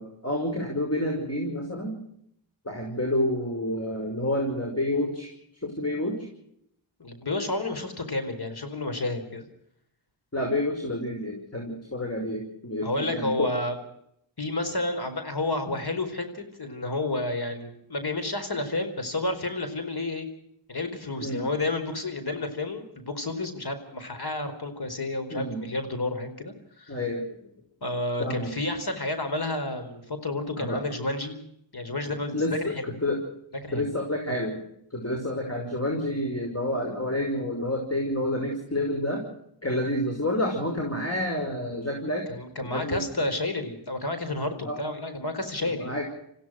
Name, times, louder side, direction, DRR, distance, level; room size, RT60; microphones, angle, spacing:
voice 1, 0.0-1.9 2.6-5.3 5.6-6.3 10.3-13.5 21.2-21.4 25.3-25.6 26.9-27.3 28.2-28.5 30.6-30.8 32.3-33.2 33.7-34.6 34.9-39.2 39.6-42.2 42.6-43.0 44.6-44.8 45.6-46.0, left 1 dB, 30° left, 1 dB, 5.7 m, -29 dB
voice 2, 7.0-9.4 12.8-13.8 14.4-20.3 20.7-27.0 27.8-31.3 31.7-32.7 33.6-33.9 42.3-45.9, left 2 dB, 50° left, 9 dB, 4.7 m, -30 dB
27.0 x 16.0 x 6.3 m, 0.73 s
cardioid pair, 50°, 49 cm